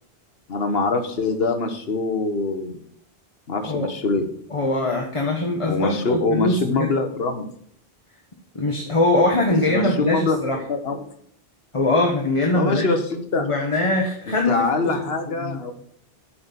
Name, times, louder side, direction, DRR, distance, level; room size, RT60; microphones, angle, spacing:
voice 1, 0.5-2.8 3.5-4.3 5.7-7.5 9.7-10.4 10.7-11.1 12.5-13.5 14.3-15.7, left 3 dB, 70° left, 7 dB, 1.4 m, -24 dB
voice 2, 4.5-7.0 8.5-10.6 11.7-12.9 13.4-15.0 15.3-15.6, left 2 dB, 30° left, 0 dB, 1.2 m, -22 dB
8.6 x 5.9 x 6.9 m, 0.66 s
omnidirectional pair, 1.1 m